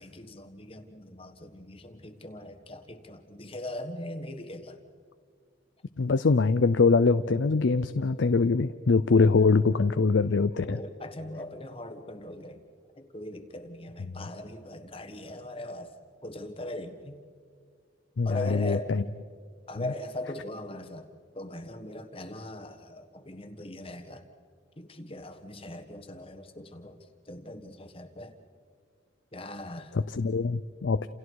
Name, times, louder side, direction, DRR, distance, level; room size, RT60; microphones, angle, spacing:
voice 1, 0.0-4.8 10.6-12.6 13.0-15.9 16.2-17.2 18.2-18.9 19.7-21.1 21.3-24.3 24.8-27.0 27.3-28.3 29.3-29.9, left 1 dB, 30° left, 7 dB, 1.4 m, -40 dB
voice 2, 6.0-10.8 18.2-19.0 29.9-31.1, left 4 dB, 80° left, 11 dB, 0.5 m, -23 dB
29.5 x 28.5 x 4.7 m, 2.1 s
head